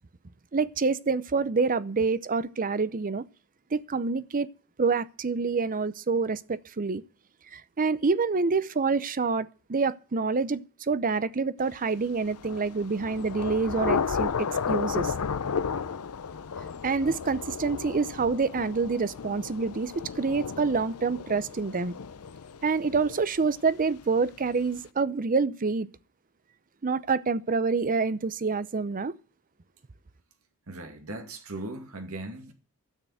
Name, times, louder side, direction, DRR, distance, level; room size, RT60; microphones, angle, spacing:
voice 1, 0.5-3.2 3.7-4.5 4.8-7.0 7.5-15.1 16.8-21.9 22.6-25.9 26.8-29.1, right 4 dB, 40° right, 0.6 m, -27 dB
Thunder / Rain, 12.2-23.8, left 6 dB, 80° left, 0.6 m, -33 dB
voice 2, 30.7-32.5, right 2 dB, 70° right, 2.2 m, -38 dB
12.5 x 6.8 x 9.1 m
head